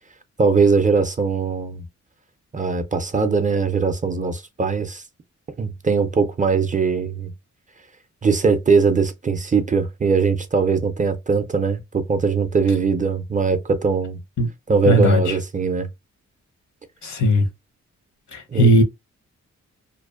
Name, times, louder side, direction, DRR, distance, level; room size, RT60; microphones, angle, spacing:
voice 1, 0.4-1.8 2.5-5.0 5.6-7.3 8.2-11.8 12.1-14.2 14.7-15.9 18.5-18.8, right 5 dB, 25° right, 0.4 m, -20 dB
voice 2, 14.9-15.4 17.0-17.5 18.3-18.8, equal, 70° left, 0.8 m, -17 dB
2.5 x 2.0 x 2.4 m
cardioid pair, 70°, 30 cm